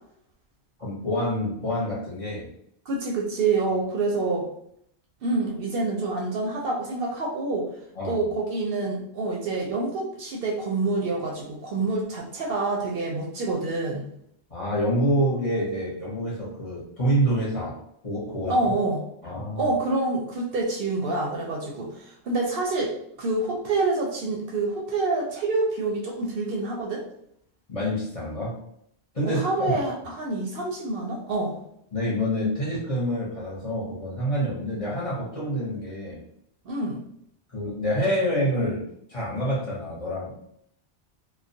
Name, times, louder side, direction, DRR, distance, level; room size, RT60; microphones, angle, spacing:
voice 1, 0.8-2.5 8.0-8.2 14.5-17.8 18.0-18.7 19.2-19.7 27.7-28.6 29.1-29.7 31.9-36.2 37.5-38.8 39.1-40.4, equal, 35° left, -6 dB, 0.7 m, -27 dB
voice 2, 2.9-4.5 5.2-7.7 8.0-14.1 18.5-19.0 19.6-27.0 29.2-31.6 36.7-37.0, right 3 dB, 65° right, -1 dB, 0.7 m, -27 dB
2.3 x 2.1 x 2.6 m, 0.71 s
omnidirectional pair, 1.1 m